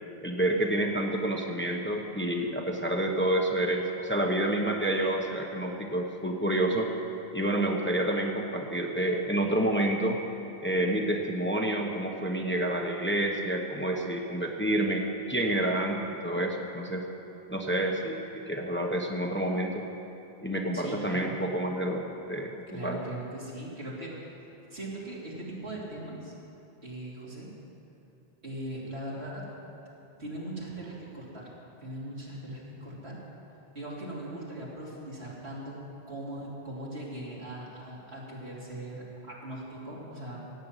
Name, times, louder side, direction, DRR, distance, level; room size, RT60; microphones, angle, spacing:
voice 1, 0.2-6.9 7.3-10.2 10.6-17.0 17.5-19.8 20.4-23.0, right 1 dB, 10° left, 1 dB, 1.0 m, -29 dB
voice 2, 20.7-21.4 22.7-24.2 24.7-26.3 26.8-27.5 28.4-29.5 30.2-33.2 33.7-35.8 36.1-40.4, right 1 dB, 80° right, -5 dB, 3.3 m, -40 dB
16.0 x 7.6 x 9.1 m, 3.0 s
omnidirectional pair, 1.1 m